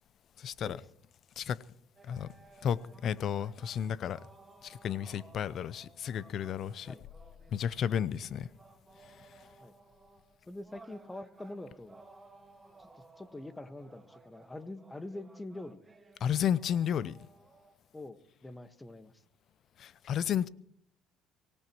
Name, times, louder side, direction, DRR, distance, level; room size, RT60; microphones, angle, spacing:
voice 1, 0.4-0.8 1.4-1.6 2.0-2.3 2.6-4.2 4.6-6.9 7.5-8.5 16.2-17.1 19.8-20.5, left 9 dB, 55° left, 0.7 m, -32 dB
sound 1, 2.0-17.7, right 3 dB, 20° right, 2.0 m, -58 dB
voice 2, 10.5-12.0 12.8-15.8 17.9-19.1, left 2 dB, 15° left, 1.5 m, -45 dB
24.5 x 18.0 x 3.1 m
supercardioid pair, 70°, 0 cm